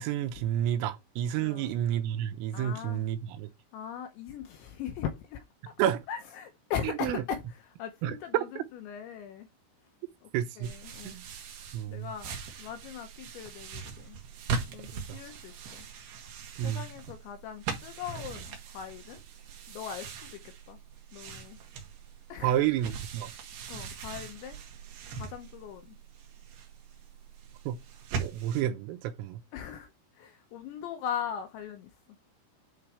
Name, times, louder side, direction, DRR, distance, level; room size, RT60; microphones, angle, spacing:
voice 1, 0.0-3.5 5.8-6.0 6.8-7.2 8.0-8.6 10.3-10.7 11.0-11.2 11.7-12.1 15.1-15.2 16.6-16.8 22.4-23.3 27.7-27.8 28.2-29.4, right 11 dB, 85° right, 3.5 m, -30 dB
voice 2, 1.4-1.7 2.5-3.0 3.7-5.4 6.1-7.4 7.8-9.5 10.2-10.3 10.6-11.2 11.9-14.2 14.7-15.8 16.6-19.2 19.7-20.4 20.7-20.8 21.1-21.6 22.3-22.6 23.7-24.6 25.1-26.0 29.5-29.9 30.2-31.9, left 8 dB, 75° left, 2.8 m, -39 dB
sound 1, 10.6-28.6, right 5 dB, 65° right, 3.0 m, -41 dB
10.0 x 4.0 x 4.8 m
omnidirectional pair, 5.9 m